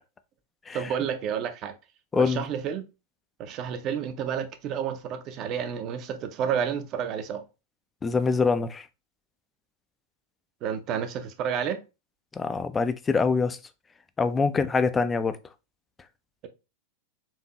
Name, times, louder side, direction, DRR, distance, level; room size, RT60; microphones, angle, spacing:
voice 1, 0.7-1.7 2.1-2.8 3.4-7.4 10.6-11.8, right 8 dB, 35° right, 0.6 m, -30 dB
voice 2, 2.1-2.4 8.0-8.9 12.3-13.6 14.2-15.4, left 4 dB, 15° left, 0.4 m, -24 dB
4.5 x 2.7 x 2.9 m
figure-of-eight pair, 90°, 0 cm